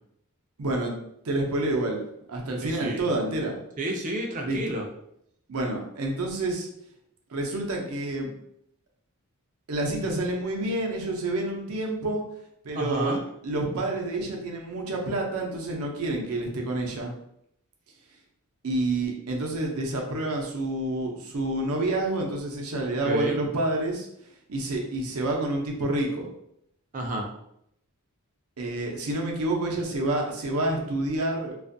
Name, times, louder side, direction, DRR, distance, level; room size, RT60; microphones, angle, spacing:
voice 1, 0.6-1.0 1.2-3.6 4.4-4.6 5.5-6.7 7.3-8.3 9.7-12.2 12.6-17.1 18.6-24.1 24.5-26.3 28.6-31.5, right 2 dB, 80° right, 1 dB, 0.6 m, -28 dB
voice 2, 2.6-3.1 3.8-4.8 12.7-13.2 23.0-23.4 26.9-27.3, right 1 dB, 35° right, 1 dB, 0.4 m, -30 dB
2.5 x 2.4 x 2.5 m, 0.74 s
head